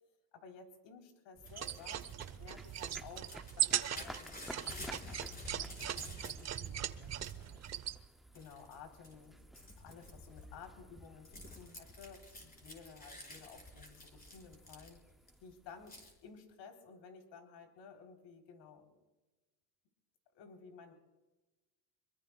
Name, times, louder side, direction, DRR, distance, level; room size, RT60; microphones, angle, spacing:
voice 1, 0.3-2.1 2.4-7.7 8.0-9.4 9.8-15.0 15.4-16.0 16.2-19.0 20.3-20.9, left 6 dB, 60° left, 3 dB, 3.6 m, -55 dB
Crumpling crinkling / Tearing, 1.4-6.7 7.0-7.8 8.3-8.7 9.0-15.3 15.9-16.1, left 1 dB, 20° left, 5.3 m, -51 dB
sound 1, 1.4-16.5, equal, ahead, 0.5 m, -56 dB
sound 2, 1.5-8.0, right 11 dB, 35° right, 0.8 m, -39 dB
26.0 x 23.0 x 2.3 m, 1.1 s
cardioid pair, 125°, 49 cm